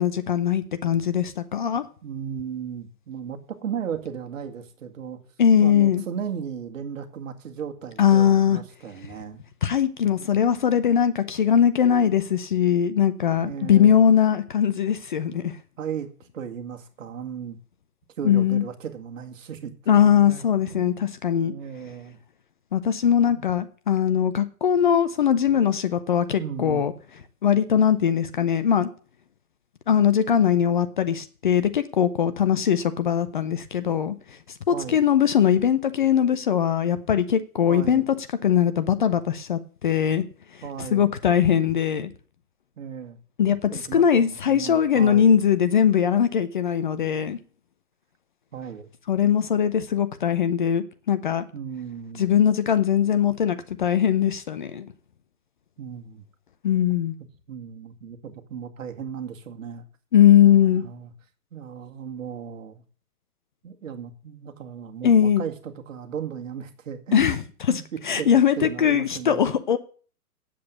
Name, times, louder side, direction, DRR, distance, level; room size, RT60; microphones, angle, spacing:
voice 1, 0.0-1.8 5.4-6.0 8.0-8.6 9.6-15.6 18.2-18.6 19.9-21.5 22.7-26.9 27.4-28.9 29.9-34.1 34.7-38.0 38.4-40.2 40.9-42.1 43.4-47.4 49.1-51.4 52.2-54.9 56.6-57.1 60.1-60.8 65.0-65.4 67.1-67.4 67.7-69.8, left 9 dB, 30° left, 0.7 m, -20 dB
voice 2, 2.0-5.2 5.6-9.4 13.4-14.0 15.8-17.6 18.2-21.0 21.4-22.2 26.4-26.9 34.7-35.0 37.7-38.1 40.6-41.2 42.8-43.2 43.7-45.4 48.5-48.9 51.5-52.4 55.8-56.2 57.5-59.9 60.4-61.1 61.5-62.8 63.6-67.3 67.7-69.5, right 7 dB, 55° right, 2.0 m, -36 dB
8.7 x 7.7 x 8.0 m
hypercardioid pair, 140°, 46 cm